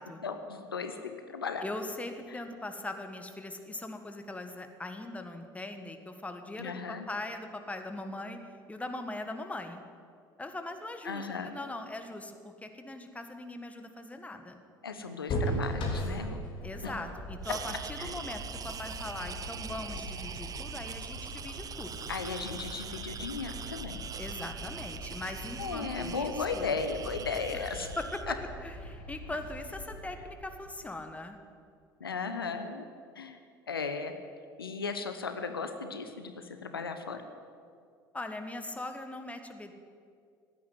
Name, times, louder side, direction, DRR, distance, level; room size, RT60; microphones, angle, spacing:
voice 1, 0.2-1.6 2.3-2.4 6.6-7.1 11.0-11.6 14.8-16.4 18.0-18.2 22.1-24.0 25.6-27.9 28.3-28.4 32.0-32.9 33.2-33.4 33.7-34.1 34.6-37.2, left 5 dB, 80° left, 8 dB, 0.9 m, -36 dB
voice 2, 1.6-9.8 10.4-14.6 16.6-22.1 24.2-26.7 27.5-28.3 28.6-31.4 38.1-39.7, left 2 dB, 10° left, 7 dB, 1.6 m, -40 dB
sound 1, 15.3-31.0, equal, 45° left, 3.2 m, -40 dB
sound 2, 17.4-28.2, right 8 dB, 30° right, 0.6 m, -43 dB
16.0 x 9.5 x 9.4 m, 2.3 s
figure-of-eight pair, 65°, 12 cm